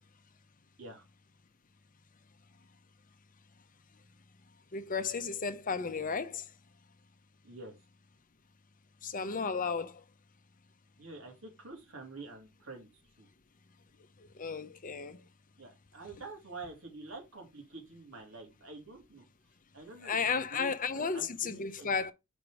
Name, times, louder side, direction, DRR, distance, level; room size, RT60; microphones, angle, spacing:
voice 1, 4.7-6.5 9.0-10.0 14.2-15.2 20.0-22.1, left 5 dB, 40° left, 0.7 m, -34 dB
voice 2, 7.4-7.7 11.0-13.3 15.6-19.2 19.7-21.9, right 3 dB, 65° right, 2.8 m, -48 dB
5.2 x 5.1 x 4.7 m
head